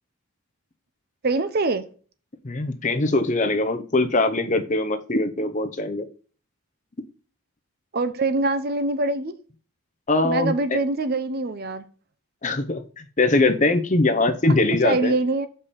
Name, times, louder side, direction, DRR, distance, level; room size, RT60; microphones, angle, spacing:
voice 1, 1.2-1.8 7.9-9.3 10.2-11.9 14.8-15.5, right 2 dB, 45° right, 0.6 m, -24 dB
voice 2, 2.4-6.1 10.1-10.8 12.4-15.1, left 2 dB, 35° left, 0.7 m, -22 dB
6.8 x 5.4 x 4.2 m
head